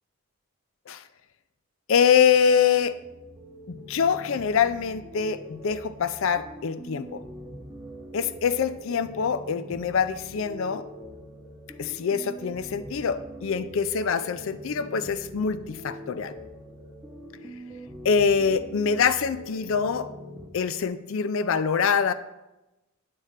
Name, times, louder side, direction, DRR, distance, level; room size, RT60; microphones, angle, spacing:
voice 1, 1.9-3.0 3.7-7.2 8.1-10.8 11.8-16.3 18.0-20.1 20.5-22.1, left 6 dB, 60° left, 13 dB, 0.4 m, -24 dB
sound 1, 2.1-20.5, equal, 15° right, 0.8 m, -43 dB
10.0 x 4.2 x 5.0 m, 1.0 s
head